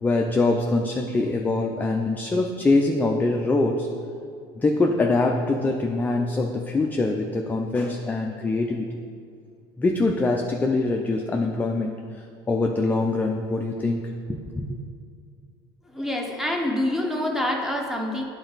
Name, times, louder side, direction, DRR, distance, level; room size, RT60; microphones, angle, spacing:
voice 1, 0.0-3.9 4.6-8.9 9.8-14.0 14.3-14.8, left 2 dB, 15° left, 1 dB, 0.4 m, -24 dB
voice 2, 15.9-18.2, left 1 dB, 5° right, 1 dB, 0.9 m, -26 dB
9.0 x 4.0 x 4.0 m, 2.2 s
supercardioid pair, 110°, 13 cm